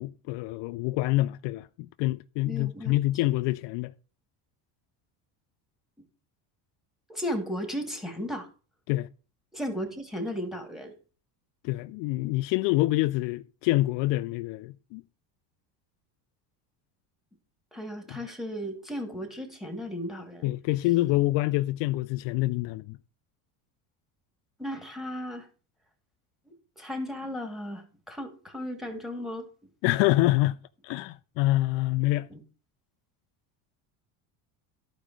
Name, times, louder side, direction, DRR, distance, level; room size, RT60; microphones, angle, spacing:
voice 1, 0.0-3.9 8.9-9.1 11.6-15.0 18.1-18.2 20.4-23.0 29.8-30.6 30.8-32.3, left 18 dB, 65° left, 0.5 m, -26 dB
voice 2, 2.5-3.0 7.1-8.5 9.5-10.9 17.7-20.5 24.6-25.5 26.8-29.5 32.3-32.4, equal, ahead, 2.6 m, -35 dB
12.0 x 5.1 x 6.1 m
supercardioid pair, 105°, 47 cm